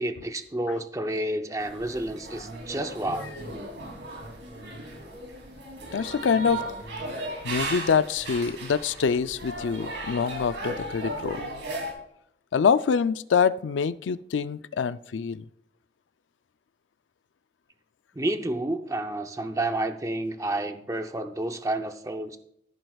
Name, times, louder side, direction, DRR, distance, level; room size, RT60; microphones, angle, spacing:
voice 1, 0.0-3.3 18.2-22.4, right 1 dB, 15° right, 7 dB, 0.6 m, -30 dB
sound 1, 1.6-11.9, right 1 dB, 80° right, 2.9 m, -36 dB
voice 2, 5.9-6.6 7.4-11.4 12.5-15.4, left 6 dB, 90° left, 14 dB, 0.4 m, -25 dB
15.0 x 7.8 x 2.4 m, 0.72 s
head